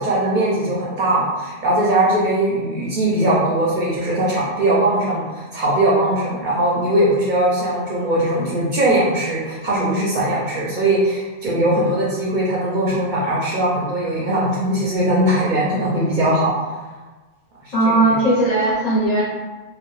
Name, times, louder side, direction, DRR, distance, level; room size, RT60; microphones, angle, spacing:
voice 1, 0.0-16.5 17.6-18.2, right 1 dB, 60° right, -5 dB, 0.5 m, -20 dB
voice 2, 17.7-19.2, right 2 dB, 50° left, -7 dB, 0.5 m, -17 dB
2.1 x 2.0 x 2.9 m, 1.2 s
omnidirectional pair, 1.1 m